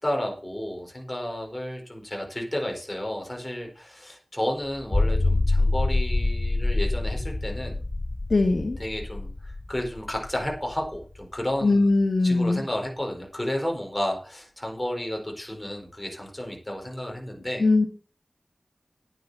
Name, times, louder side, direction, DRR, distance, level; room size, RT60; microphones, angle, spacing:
voice 1, 0.0-7.8 8.8-11.9 12.2-17.9, left 1 dB, 20° left, 1 dB, 4.7 m, -32 dB
sound 1, 4.7-11.2, left 2 dB, 40° left, 0.7 m, -26 dB
voice 2, 8.3-8.8 11.6-12.6 17.6-17.9, left 3 dB, 70° left, 3 dB, 1.9 m, -20 dB
10.0 x 9.2 x 5.8 m, 0.37 s
wide cardioid pair, 70°, 0 cm